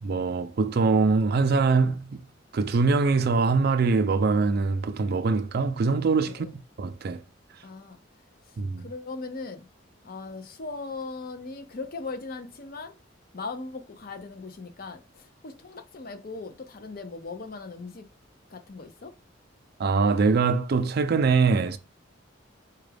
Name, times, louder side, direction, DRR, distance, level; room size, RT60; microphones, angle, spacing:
voice 1, 0.0-2.2 2.5-6.5 6.8-7.2 8.6-8.9 19.8-21.8, right 4 dB, 55° right, 0.4 m, -23 dB
voice 2, 7.6-8.0 8.5-9.7 10.0-12.9 13.3-18.1 18.5-19.2, left 3 dB, 50° left, 0.6 m, -39 dB
4.8 x 2.3 x 3.3 m
head